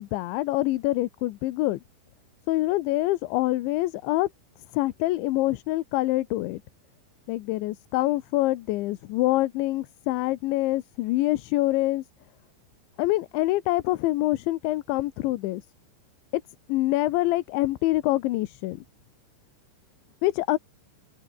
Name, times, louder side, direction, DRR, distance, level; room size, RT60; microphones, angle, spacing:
voice 1, 0.0-1.8 2.5-4.3 4.7-6.6 7.3-12.0 13.0-15.6 16.3-16.4 16.7-18.8 20.2-20.6, left 17 dB, 85° left, 3.4 m, -25 dB
open air
omnidirectional pair, 5.2 m